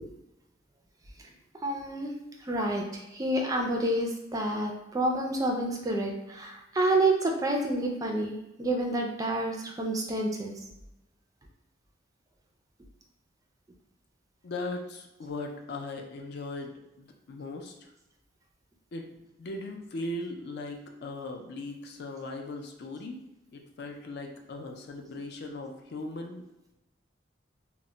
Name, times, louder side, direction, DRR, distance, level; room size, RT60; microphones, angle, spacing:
voice 1, 1.6-2.1 2.4-2.8 3.1-10.5, right 1 dB, 20° right, 1 dB, 0.3 m, -28 dB
voice 2, 14.4-17.9 18.9-23.2 23.5-26.4, left 2 dB, 60° left, 3 dB, 0.4 m, -38 dB
2.2 x 2.0 x 3.8 m, 0.93 s
head